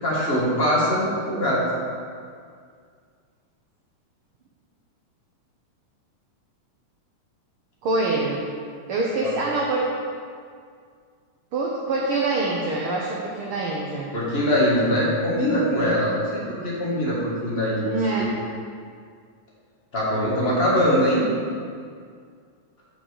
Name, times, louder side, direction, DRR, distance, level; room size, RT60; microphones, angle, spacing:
voice 1, 0.0-1.6 9.2-9.3 14.1-17.8 18.2-18.3 19.9-21.2, equal, 30° left, -6 dB, 1.3 m, -22 dB
voice 2, 7.8-8.4 8.9-9.9 11.5-14.1 15.8-16.2 17.8-18.4, right 2 dB, 70° right, -3 dB, 1.3 m, -25 dB
6.3 x 5.8 x 7.0 m, 2.1 s
omnidirectional pair, 3.5 m